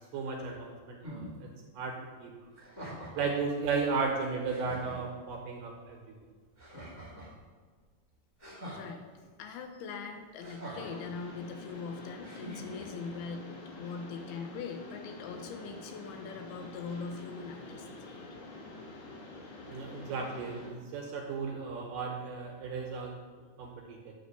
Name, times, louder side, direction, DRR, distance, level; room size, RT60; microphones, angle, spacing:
voice 1, 0.1-1.5 1.7-2.3 3.2-6.1 19.6-24.1, right 4 dB, 70° right, 0 dB, 2.2 m, -35 dB
sound 1, 1.0-1.3 2.5-3.4 4.1-4.2 4.4-5.0 6.6-7.4 8.4-8.8 10.4-11.1 12.2-12.9, equal, 20° right, 0.7 m, -44 dB
voice 2, 8.7-9.1 9.4-13.5 13.8-18.3, left 5 dB, 90° left, 5 dB, 2.7 m, -41 dB
Mechanisms, 10.7-20.7, left 2 dB, 60° left, 2.5 m, -47 dB
9.3 x 3.1 x 6.7 m, 1.5 s
omnidirectional pair, 4.4 m